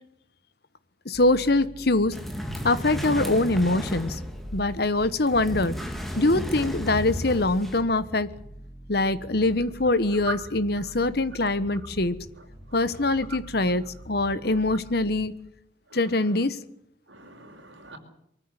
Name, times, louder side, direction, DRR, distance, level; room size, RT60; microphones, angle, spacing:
voice 1, 1.0-2.1 2.6-4.2 4.5-5.7 6.1-8.3 8.9-12.2 12.7-15.3 15.9-16.6, left 2 dB, 55° left, 1.3 m, -23 dB
sound 1, 1.1-15.3, equal, 30° left, 6.1 m, -45 dB
sound 2, 2.1-7.8, equal, ahead, 2.6 m, -34 dB
voice 2, 12.7-13.4 14.4-14.6 15.9-16.3 17.1-18.0, right 2 dB, 85° right, 5.0 m, -39 dB
23.5 x 14.5 x 9.6 m
head